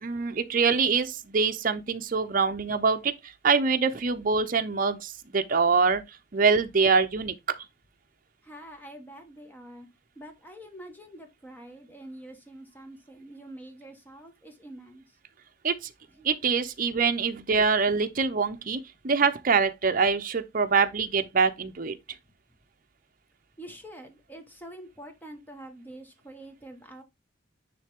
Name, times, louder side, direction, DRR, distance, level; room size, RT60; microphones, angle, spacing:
voice 1, 0.0-6.0 6.3-7.3 15.6-15.9 16.2-22.0, right 5 dB, 45° right, 0.7 m, -24 dB
voice 2, 8.4-9.9 10.1-15.0 16.1-16.3 23.6-27.0, right 1 dB, 10° left, 1.3 m, -46 dB
9.6 x 3.3 x 3.5 m
head